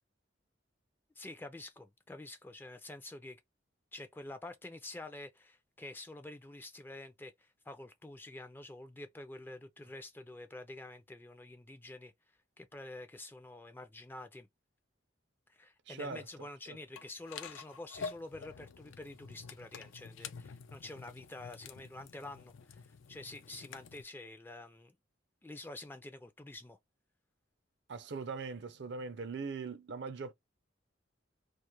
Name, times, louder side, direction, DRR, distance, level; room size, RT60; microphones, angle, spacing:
voice 1, 1.2-3.4 3.9-12.1 12.6-14.5 15.5-25.0 25.4-26.8, left 2 dB, 10° left, 0.3 m, -48 dB
voice 2, 15.9-16.2 16.7-16.8 27.9-30.3, right 4 dB, 60° right, 0.5 m, -41 dB
sound 1, 17.0-24.0, left 5 dB, 90° left, 0.4 m, -48 dB
2.5 x 2.3 x 2.9 m
head